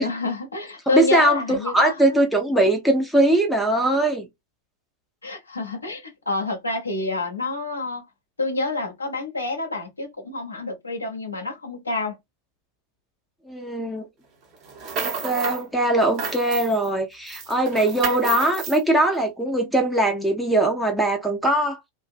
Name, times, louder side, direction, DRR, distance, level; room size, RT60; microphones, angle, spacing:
voice 1, 0.0-2.2 5.2-8.1 8.4-12.1, left 2 dB, 80° left, 0.7 m, -28 dB
voice 2, 0.9-4.3 13.5-14.1 15.0-21.8, right 1 dB, ahead, 0.6 m, -21 dB
sound 1, 14.6-15.6 16.0-16.9 17.3-18.8, right 5 dB, 35° right, 0.8 m, -31 dB
2.5 x 2.1 x 2.4 m
figure-of-eight pair, 90°, 0 cm